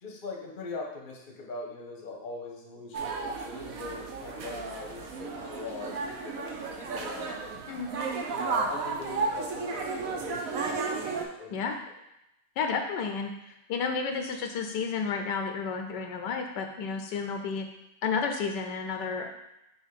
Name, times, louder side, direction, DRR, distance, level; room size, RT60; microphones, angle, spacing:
voice 1, 0.0-7.8 8.3-11.5 11.8-11.9, left 3 dB, 35° left, 0 dB, 1.0 m, -41 dB
sound 1, 2.9-11.2, right 4 dB, 60° right, 1.1 m, -33 dB
voice 2, 12.6-13.3 13.7-17.7 18.0-19.3, left 5 dB, 80° left, 4 dB, 1.4 m, -31 dB
6.4 x 3.0 x 5.7 m, 0.86 s
omnidirectional pair, 1.9 m